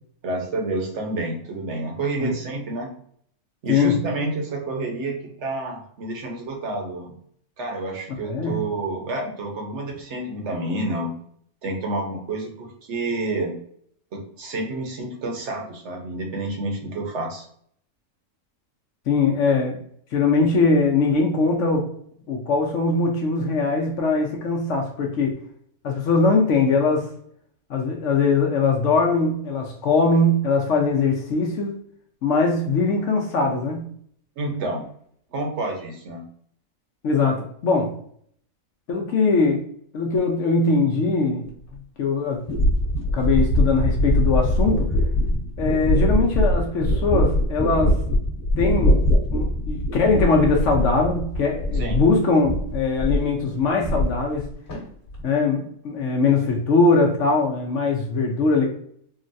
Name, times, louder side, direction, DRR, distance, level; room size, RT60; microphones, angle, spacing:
voice 1, 0.2-2.9 3.6-7.2 7.6-11.2 11.6-13.5 14.1-17.4 34.4-34.9 35.3-36.2 51.7-52.0, right 2 dB, 55° right, 1 dB, 1.1 m, -29 dB
voice 2, 8.3-8.6 19.1-19.8 20.1-21.9 22.3-25.3 25.8-27.1 27.7-31.8 32.2-33.9 37.0-38.0 38.9-39.6 39.9-41.5 42.0-42.4 43.1-44.9 45.6-48.0 48.6-49.0 49.3-54.5 55.2-58.7, left 3 dB, 65° left, 1 dB, 0.9 m, -21 dB
sound 1, 41.7-41.8 42.5-52.2 52.4-53.3 53.6-54.4 54.7-55.2, equal, 35° left, 1.3 m, -22 dB
3.8 x 2.1 x 2.6 m, 0.63 s
omnidirectional pair, 1.5 m